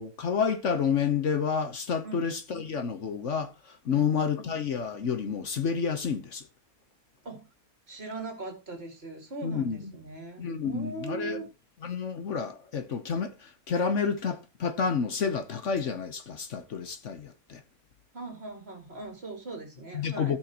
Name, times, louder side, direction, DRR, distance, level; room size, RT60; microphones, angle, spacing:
voice 1, 0.0-6.5 9.4-9.8 10.4-11.4 11.8-17.6 19.9-20.4, left 6 dB, 55° left, 1.2 m, -29 dB
voice 2, 7.9-11.5 18.1-20.4, right 3 dB, 45° right, 2.5 m, -40 dB
17.0 x 6.0 x 2.9 m
omnidirectional pair, 1.5 m